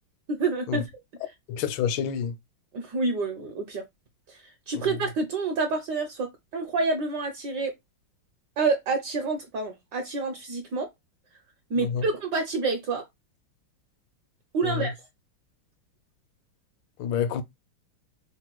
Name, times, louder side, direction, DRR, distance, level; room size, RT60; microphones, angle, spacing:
voice 1, 0.3-0.9 2.7-3.8 4.3-7.7 8.6-10.9 11.7-13.0 14.5-14.9, right 3 dB, 65° right, 1.1 m, -28 dB
voice 2, 1.5-2.3 11.8-12.0 14.8-14.9 17.0-17.4, left 8 dB, 75° left, 1.4 m, -27 dB
3.7 x 2.2 x 4.4 m
omnidirectional pair, 2.4 m